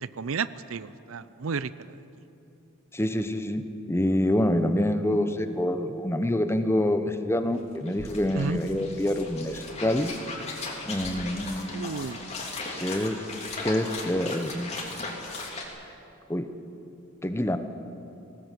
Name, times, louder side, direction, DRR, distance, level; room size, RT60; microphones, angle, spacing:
voice 1, 0.0-1.7 8.3-8.6 11.7-12.2, right 5 dB, 70° right, 16 dB, 0.6 m, -32 dB
voice 2, 2.9-3.6 3.9-10.1 10.8-12.1 12.8-13.2 13.6-14.7 16.3-16.5 17.2-17.6, left 1 dB, 10° left, 9 dB, 1.0 m, -26 dB
sound 1, 7.5-7.6 7.7-15.7, left 3 dB, 30° left, 3.0 m, -37 dB
19.0 x 18.0 x 8.3 m, 2.9 s
head